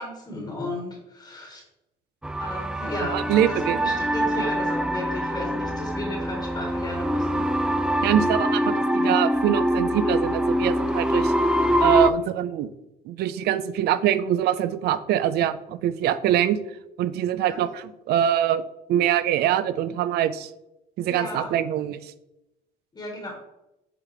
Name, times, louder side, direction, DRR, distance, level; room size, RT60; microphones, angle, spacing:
voice 1, 0.0-1.6 2.4-7.5 17.5-17.6 21.0-21.5 22.9-23.3, left 1 dB, 25° left, 1 dB, 1.4 m, -34 dB
sound 1, 2.2-12.1, equal, 5° right, 0.3 m, -24 dB
voice 2, 3.1-3.8 8.0-11.3 11.8-12.7 13.0-16.6 17.0-18.6 18.9-20.5 21.0-22.1, right 11 dB, 75° right, 14 dB, 0.5 m, -24 dB
7.5 x 4.0 x 3.3 m, 0.91 s
cardioid pair, 110°, 17 cm